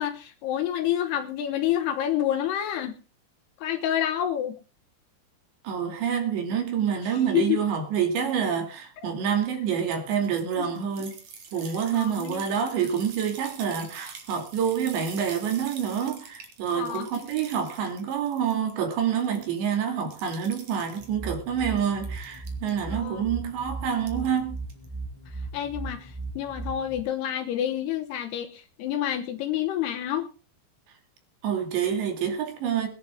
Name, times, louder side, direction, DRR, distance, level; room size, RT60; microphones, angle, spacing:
voice 1, 0.0-3.0 3.6-4.6 7.3-7.6 10.6-10.7 11.9-12.4 16.7-17.1 22.9-23.2 25.5-30.3, left 11 dB, 70° left, 2.8 m, -28 dB
voice 2, 5.6-11.1 11.5-24.6 31.4-32.9, right 8 dB, 70° right, 4.7 m, -27 dB
sound 1, 10.1-18.7 19.0-19.7 20.1-21.1 21.6-22.8 24.0-24.4 24.7-24.9, right 6 dB, 45° right, 3.4 m, -46 dB
sound 2, 21.0-27.0, right 3 dB, ahead, 5.4 m, -37 dB
21.5 x 11.0 x 3.7 m
omnidirectional pair, 5.4 m